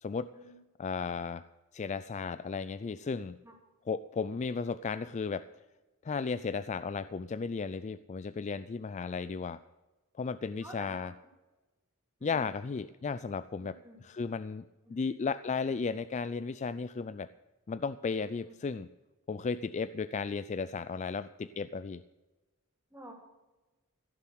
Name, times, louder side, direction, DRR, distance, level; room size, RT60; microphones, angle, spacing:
voice 1, 0.8-1.4 1.7-3.4 3.9-5.5 6.0-9.6 10.2-11.1 12.2-17.3 17.7-18.9 19.3-22.0, left 5 dB, 35° left, 14 dB, 0.3 m, -35 dB
voice 2, 10.6-11.1 12.2-12.5 13.6-14.0 14.9-15.0 18.4-18.5 22.9-23.1, right 1 dB, 10° right, 0 dB, 3.6 m, -50 dB
16.0 x 7.1 x 8.4 m, 1.2 s
head